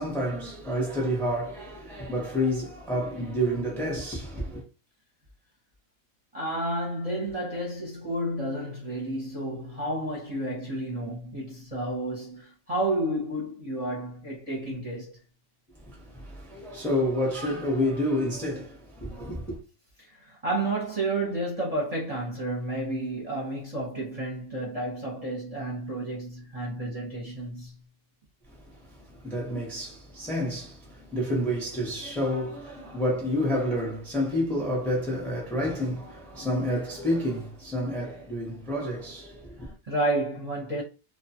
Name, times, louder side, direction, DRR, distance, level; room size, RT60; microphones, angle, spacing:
voice 1, 0.0-4.6 15.8-19.6 29.2-39.7, equal, ahead, 0.7 m, -29 dB
voice 2, 6.3-15.1 20.0-27.7 39.9-40.8, right 1 dB, 30° right, 0.8 m, -31 dB
2.4 x 2.3 x 2.7 m
omnidirectional pair, 1.4 m